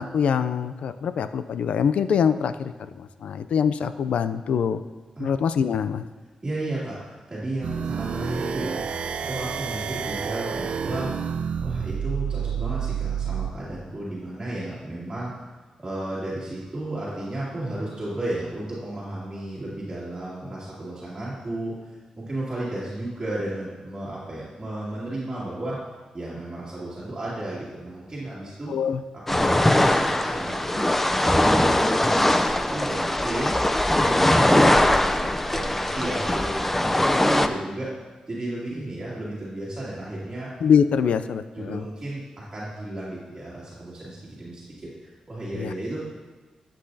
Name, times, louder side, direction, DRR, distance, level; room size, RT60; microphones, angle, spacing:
voice 1, 0.0-4.8 5.2-6.0 28.7-29.0 40.6-41.8 45.6-45.7, left 7 dB, 85° left, 12 dB, 0.4 m, -24 dB
voice 2, 6.4-15.3 15.8-21.7 22.2-25.8 26.1-28.7 29.1-33.5 33.9-35.1 35.4-37.9 38.3-40.5 41.0-41.1 41.5-46.2, right 1 dB, 25° right, -10 dB, 2.3 m, -33 dB
sound 1, 7.6-13.5, right 7 dB, 75° right, 0.4 m, -29 dB
sound 2, 29.3-37.5, left 1 dB, 10° left, 0.4 m, -21 dB
11.5 x 7.7 x 2.7 m, 1.3 s
wide cardioid pair, 105°, 2 cm